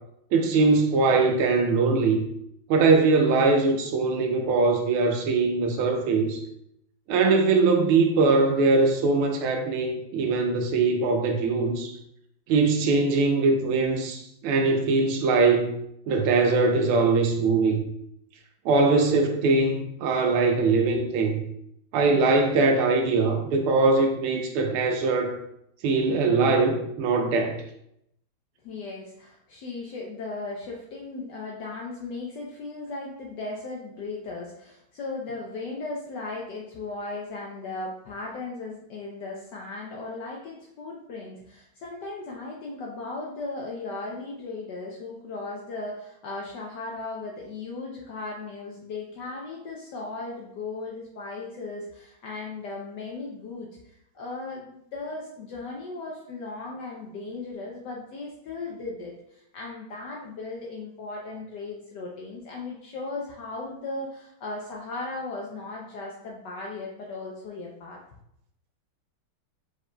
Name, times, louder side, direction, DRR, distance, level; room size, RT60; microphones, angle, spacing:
voice 1, 0.3-2.2 2.7-6.4 7.1-11.9 12.5-15.8 16.1-17.8 18.6-21.4 21.9-25.4 25.8-27.6, right 3 dB, 85° right, 3 dB, 1.5 m, -22 dB
voice 2, 28.6-68.0, left 3 dB, 70° left, -2 dB, 1.1 m, -37 dB
4.7 x 4.4 x 2.2 m, 0.76 s
omnidirectional pair, 2.3 m